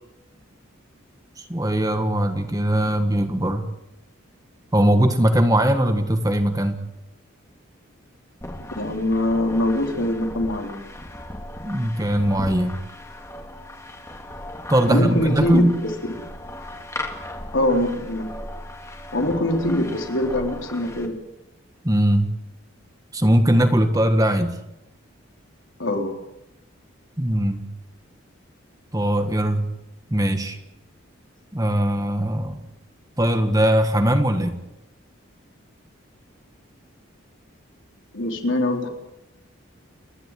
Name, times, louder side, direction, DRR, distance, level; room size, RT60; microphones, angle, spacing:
voice 1, 1.5-3.7 4.7-6.8 11.6-12.8 14.7-15.8 21.8-22.3 23.1-24.5 27.2-27.7 28.9-29.7 30.1-30.6 31.5-32.6 33.2-34.5, right 1 dB, 15° right, 7 dB, 1.5 m, -20 dB
sound 1, 8.4-21.1, left 1 dB, 15° left, 2.2 m, -37 dB
voice 2, 8.8-10.8 14.9-15.9 17.5-18.3 19.1-21.1 25.8-26.1 38.1-38.9, left 1 dB, 70° left, 2 dB, 4.0 m, -23 dB
30.0 x 12.0 x 9.3 m, 0.90 s
head